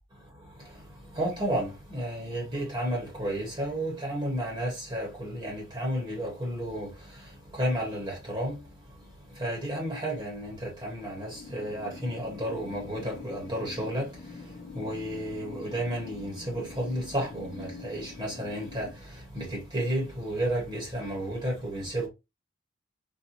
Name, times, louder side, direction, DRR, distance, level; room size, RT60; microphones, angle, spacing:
voice 1, 1.1-7.3 7.5-8.6 9.4-14.1 14.7-22.1, right 1 dB, 20° right, 1.1 m, -32 dB
sound 1, 11.3-18.9, left 4 dB, 35° left, 0.4 m, -45 dB
4.1 x 2.1 x 2.8 m
head